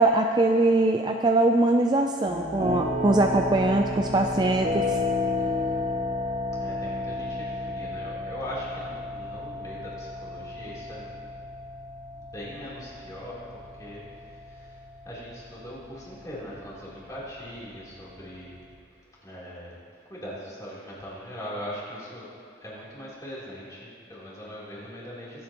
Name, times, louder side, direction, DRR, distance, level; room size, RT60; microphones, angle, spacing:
voice 1, 0.0-5.0, right 2 dB, 20° right, 3 dB, 0.4 m, -22 dB
sound 1, 2.3-18.7, left 2 dB, 40° right, 2.0 m, -33 dB
voice 2, 5.4-5.9 6.6-11.2 12.1-18.6 19.2-19.8 20.1-22.3 22.6-25.4, equal, 20° left, -8 dB, 3.4 m, -41 dB
24.5 x 8.5 x 3.0 m, 2.4 s
head